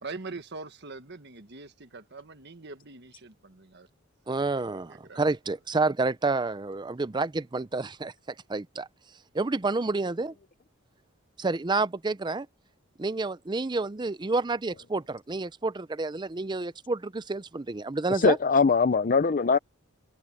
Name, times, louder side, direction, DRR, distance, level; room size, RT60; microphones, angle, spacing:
voice 1, 0.0-3.9 5.0-5.2, right 3 dB, 55° right, 1.6 m, -42 dB
voice 2, 4.3-8.9 9.3-10.3 11.4-12.5 13.0-18.4, right 3 dB, 20° right, 0.5 m, -29 dB
voice 3, 18.1-19.6, left 5 dB, 40° left, 0.5 m, -22 dB
head